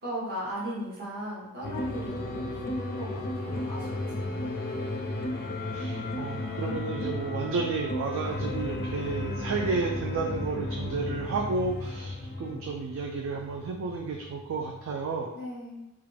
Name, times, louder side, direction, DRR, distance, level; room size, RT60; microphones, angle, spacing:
voice 1, 0.0-4.8 15.3-15.8, equal, 45° right, -9 dB, 1.0 m, -38 dB
sound 1, 1.6-15.3, left 1 dB, 40° left, 0.4 m, -34 dB
voice 2, 5.7-15.3, right 4 dB, 60° right, 0 dB, 0.3 m, -32 dB
2.4 x 2.2 x 3.2 m, 0.97 s
head